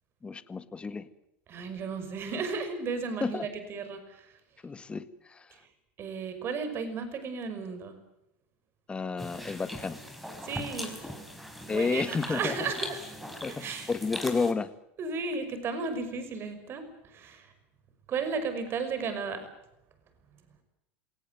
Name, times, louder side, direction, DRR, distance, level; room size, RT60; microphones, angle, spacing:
voice 1, 0.2-1.1 3.2-3.5 4.6-5.5 8.9-10.0 11.7-12.7 13.4-14.7, left 4 dB, 15° left, 12 dB, 1.7 m, -31 dB
voice 2, 1.5-4.3 5.5-5.6 6.0-7.9 10.4-11.0 11.7-13.0 13.5-13.9 15.0-17.5 18.1-19.5, right 5 dB, 35° right, 9 dB, 5.7 m, -34 dB
sound 1, 9.2-14.5, equal, ahead, 4.7 m, -41 dB
27.5 x 18.0 x 9.3 m, 0.88 s
supercardioid pair, 120°, 7 cm